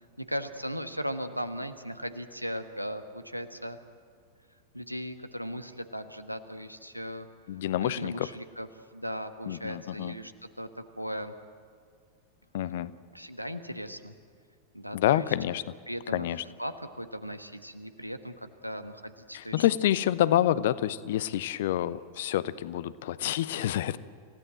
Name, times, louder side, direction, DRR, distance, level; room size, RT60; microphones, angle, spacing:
voice 1, 0.2-3.8 4.7-7.3 7.8-8.7 8.9-10.3 10.6-11.3 13.1-14.1 14.7-15.3 15.9-16.3 16.6-19.7, equal, 90° right, 9 dB, 1.3 m, -37 dB
voice 2, 7.5-8.3 9.5-10.2 12.5-12.9 14.9-15.7 16.1-16.4 19.3-24.0, left 12 dB, 55° left, 17 dB, 0.8 m, -28 dB
28.0 x 16.5 x 7.8 m, 2.2 s
figure-of-eight pair, 90°, 0 cm